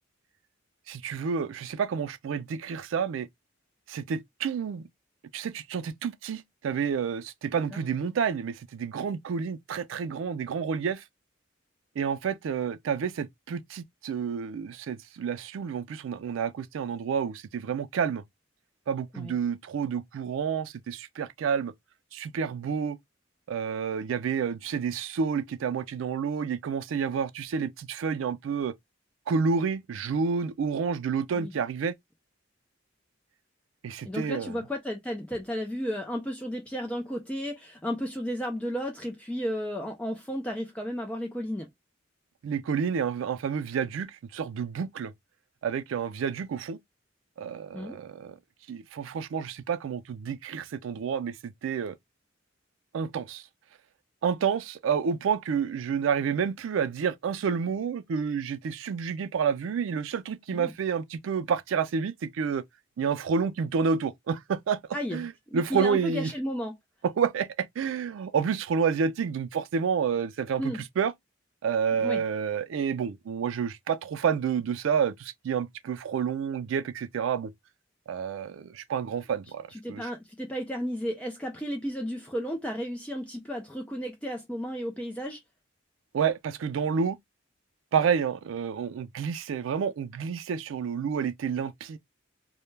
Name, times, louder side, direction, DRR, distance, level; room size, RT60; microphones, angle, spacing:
voice 1, 0.9-3.3 3.9-4.8 5.3-11.0 12.0-18.2 18.9-21.7 22.1-23.0 23.5-28.7 29.3-31.9 33.8-34.6 42.4-45.1 45.6-46.8 47.4-48.4 48.7-51.9 52.9-53.4 54.2-62.6 63.0-64.8 65.1-66.3 67.0-71.1 71.6-77.5 78.1-80.1 86.1-87.2 87.9-92.0, right 6 dB, 80° right, 0.3 m, -29 dB
voice 2, 34.0-41.7 47.7-48.0 60.5-60.7 64.9-65.2 65.5-66.7 70.6-70.8 72.0-72.2 79.7-85.4, equal, 5° left, 0.3 m, -33 dB
2.1 x 2.1 x 3.0 m
head